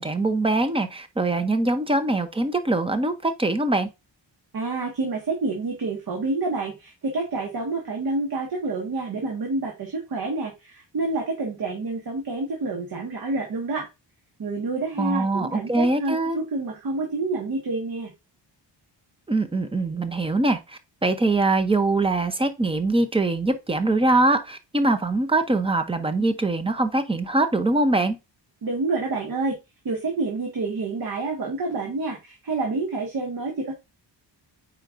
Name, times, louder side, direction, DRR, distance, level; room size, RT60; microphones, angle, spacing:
voice 1, 0.0-3.9 15.0-16.4 19.3-28.2, right 2 dB, 15° right, 0.6 m, -23 dB
voice 2, 4.5-13.9 14.4-18.1 28.6-29.6 29.9-33.7, right 3 dB, 55° right, 1.6 m, -28 dB
8.8 x 4.6 x 2.5 m
wide cardioid pair, 175°, 44 cm